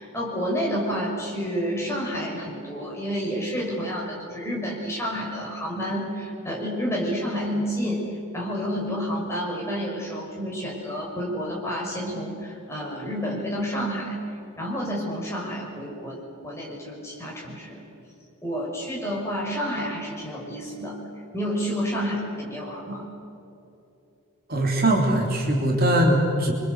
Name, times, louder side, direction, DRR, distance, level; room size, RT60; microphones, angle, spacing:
voice 1, 0.0-8.0 8.3-14.2 14.6-17.8 18.4-21.0 21.3-23.1, equal, 10° left, -3 dB, 6.3 m, -29 dB
voice 2, 24.5-26.5, right 1 dB, 45° right, 0 dB, 3.7 m, -21 dB
27.5 x 24.5 x 8.2 m, 2.8 s
head